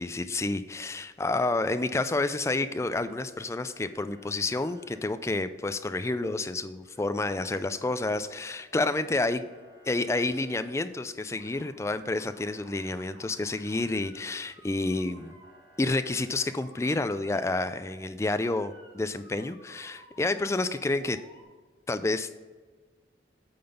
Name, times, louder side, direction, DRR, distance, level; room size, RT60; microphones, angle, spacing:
voice 1, 0.0-9.5 9.9-15.3 15.8-21.2 21.9-22.4, left 2 dB, 15° left, 12 dB, 0.3 m, -29 dB
Motor vehicle (road) / Siren, 3.0-3.3 3.7-5.0 6.8-7.5 7.7-10.7 11.2-11.7 12.1-21.4, equal, 30° right, 1.9 m, -57 dB
8.6 x 3.9 x 6.8 m, 1.4 s
head